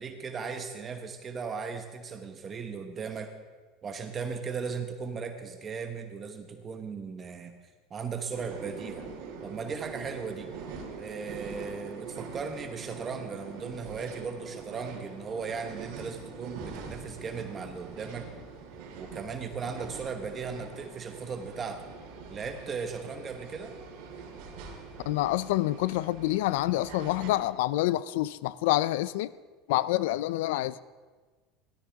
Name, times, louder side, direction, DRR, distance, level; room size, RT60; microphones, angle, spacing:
voice 1, 0.0-3.3 3.8-7.6 7.9-9.1 9.4-10.5 11.0-18.3 19.0-21.9 22.3-23.7, right 5 dB, 25° right, 1.0 m, -37 dB
sound 1, 8.3-27.3, right 5 dB, 65° right, 2.8 m, -43 dB
voice 2, 25.1-29.3 29.7-30.8, left 16 dB, 80° left, 0.3 m, -27 dB
17.5 x 13.0 x 3.5 m
supercardioid pair, 140°, 0 cm